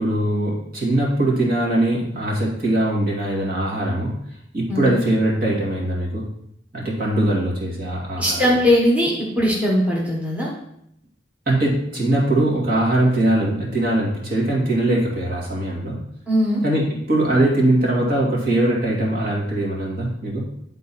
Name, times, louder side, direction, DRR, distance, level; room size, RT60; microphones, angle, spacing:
voice 1, 0.0-4.1 4.5-6.3 6.7-8.6 11.5-16.0 16.6-20.5, right 1 dB, 50° right, -4 dB, 2.2 m, -21 dB
voice 2, 8.2-10.5 16.3-16.6, equal, 10° right, -5 dB, 1.2 m, -19 dB
10.5 x 3.9 x 4.2 m, 0.75 s
head